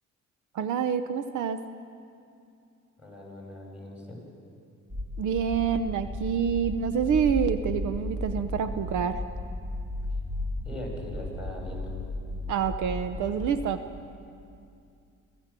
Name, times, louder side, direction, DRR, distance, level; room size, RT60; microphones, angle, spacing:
voice 1, 0.5-1.6 5.2-9.2 12.5-13.8, right 7 dB, 75° right, 10 dB, 0.9 m, -27 dB
voice 2, 3.0-4.2 10.6-12.0, left 1 dB, 5° right, -2 dB, 8.0 m, -40 dB
sound 1, 4.9-13.6, left 1 dB, 30° right, 3.6 m, -35 dB
25.5 x 16.5 x 7.6 m, 2.5 s
cardioid pair, 90°, 30 cm